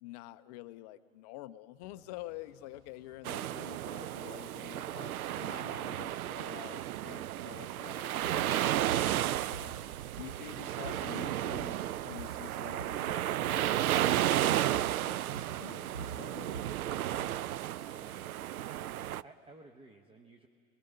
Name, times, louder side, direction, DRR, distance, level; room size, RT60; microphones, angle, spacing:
voice 1, 0.0-9.8 10.2-14.3 14.7-16.6, left 16 dB, 30° left, 12 dB, 0.5 m, -48 dB
sound 1, 1.8-17.3, right 2 dB, 35° right, 1.9 m, -63 dB
sound 2, 3.2-19.2, right 12 dB, 75° right, 0.5 m, -33 dB
sound 3, 8.2-8.4 8.9-9.1 9.5-10.5 10.8-11.1 11.4-11.8 12.1-13.0 13.3-13.6 14.0-14.2 14.7-15.0 15.3-17.4, right 3 dB, 50° right, 5.5 m, -46 dB
voice 2, 17.2-18.3 19.2-20.5, right 3 dB, 15° right, 5 dB, 0.8 m, -56 dB
23.5 x 20.5 x 5.5 m, 2.1 s
hypercardioid pair, 105°, 44 cm